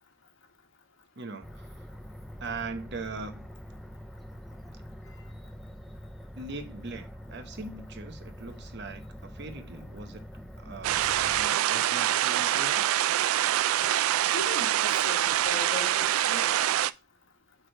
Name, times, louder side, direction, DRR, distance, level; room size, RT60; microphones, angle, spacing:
voice 1, 1.2-1.9 2.4-3.5 6.3-10.2 10.6-11.1 11.4-12.9, right 3 dB, 55° right, 0.9 m, -40 dB
sound 1, 1.4-11.5, equal, ahead, 0.4 m, -45 dB
sound 2, 10.8-16.9, right 12 dB, 90° right, 0.3 m, -25 dB
voice 2, 14.3-16.7, left 3 dB, 65° left, 1.3 m, -39 dB
8.4 x 3.4 x 4.4 m
head